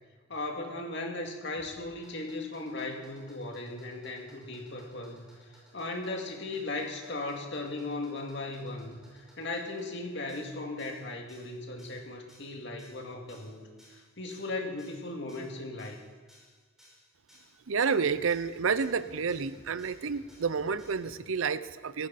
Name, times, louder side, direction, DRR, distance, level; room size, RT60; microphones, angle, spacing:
voice 1, 0.3-5.3 5.7-16.0, left 2 dB, 55° left, 1 dB, 2.3 m, -37 dB
sound 1, 1.5-21.2, equal, ahead, 5.1 m, -59 dB
voice 2, 17.7-22.1, right 5 dB, 75° right, 15 dB, 0.6 m, -30 dB
18.0 x 15.0 x 4.2 m, 1.5 s
head